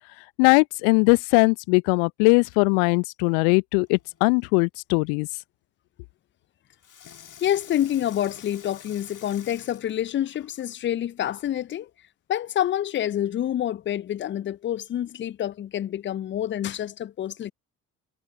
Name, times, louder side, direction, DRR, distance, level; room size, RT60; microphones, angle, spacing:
voice 1, 0.4-5.3, left 40 dB or more, 65° left, 0.8 m, -20 dB
Water tap faucet / Sink (filling or washing), 3.8-4.5 6.8-10.8 11.4-11.5, left 8 dB, 40° left, 2.9 m, -48 dB
voice 2, 7.4-11.9 12.3-17.5, left 11 dB, 25° left, 0.5 m, -27 dB
figure-of-eight pair, 50°, 46 cm